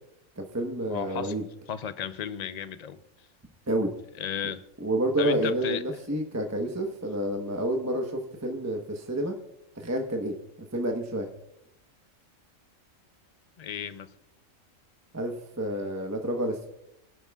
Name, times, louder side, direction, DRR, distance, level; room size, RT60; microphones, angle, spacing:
voice 1, 0.4-1.4 3.7-3.9 4.8-9.3 9.7-10.4 10.7-11.3 15.1-16.7, right 1 dB, 15° right, 3 dB, 0.9 m, -29 dB
voice 2, 0.9-1.3 1.7-3.0 4.2-4.6 5.2-5.8 13.6-14.1, left 8 dB, 60° left, 12 dB, 0.4 m, -34 dB
24.5 x 11.0 x 2.4 m, 0.80 s
omnidirectional pair, 1.4 m